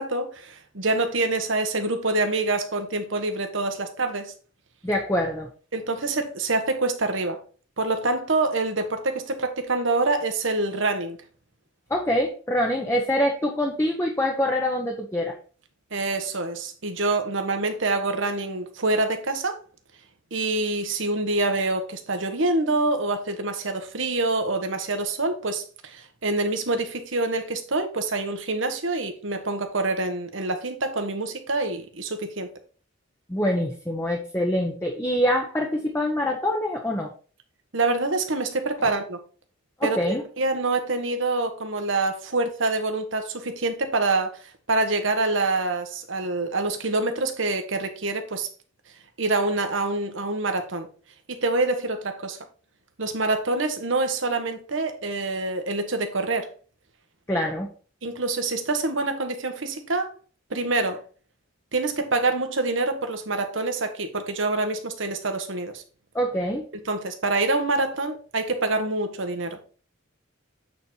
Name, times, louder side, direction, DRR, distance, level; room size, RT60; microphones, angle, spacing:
voice 1, 0.0-4.3 5.7-7.4 7.8-11.2 15.9-19.6 20.3-32.5 37.7-39.2 39.8-44.3 44.7-48.5 49.2-50.9 51.3-52.4 53.0-56.5 58.0-60.1 60.5-61.0 61.7-65.8 66.9-69.6, right 2 dB, 70° right, 1.3 m, -26 dB
voice 2, 4.8-5.5 11.9-15.4 33.3-37.1 39.8-40.2 57.3-57.7 66.1-66.7, left 1 dB, 15° left, 1.0 m, -25 dB
8.5 x 4.4 x 4.5 m
head